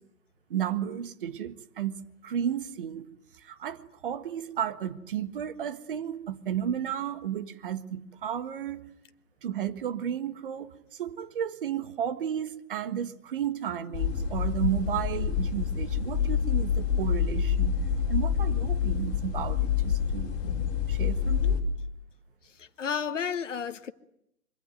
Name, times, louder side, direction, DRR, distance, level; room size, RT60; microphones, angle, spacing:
voice 1, 0.5-3.1 3.4-8.8 9.4-10.7 11.0-17.8 18.1-20.4 20.9-21.6, right 9 dB, 35° right, 1.6 m, -33 dB
sound 1, 13.9-21.6, left 7 dB, 20° left, 4.8 m, -27 dB
voice 2, 22.6-23.9, left 7 dB, 55° left, 1.5 m, -32 dB
25.0 x 24.0 x 9.3 m
figure-of-eight pair, 135°, 45 cm